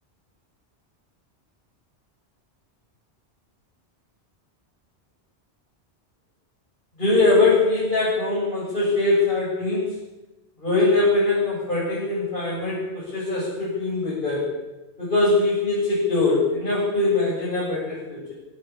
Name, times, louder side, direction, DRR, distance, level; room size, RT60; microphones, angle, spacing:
voice 1, 7.0-10.0 10.6-14.5 15.0-18.3, left 3 dB, 50° left, -7 dB, 8.0 m, -22 dB
22.0 x 17.0 x 8.8 m, 1.1 s
omnidirectional pair, 1.1 m